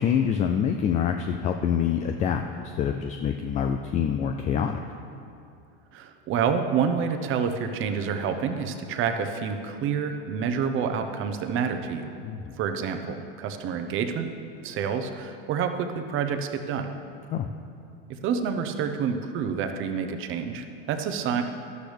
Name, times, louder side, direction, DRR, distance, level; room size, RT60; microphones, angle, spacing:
voice 1, 0.0-4.8 12.2-12.5 17.3-17.5, left 8 dB, 25° left, 6 dB, 0.3 m, -26 dB
voice 2, 5.9-12.1 12.6-14.3 14.6-16.9 18.1-21.4, right 6 dB, 40° right, 7 dB, 0.9 m, -28 dB
12.0 x 12.0 x 3.4 m, 2.5 s
supercardioid pair, 135°, 31 cm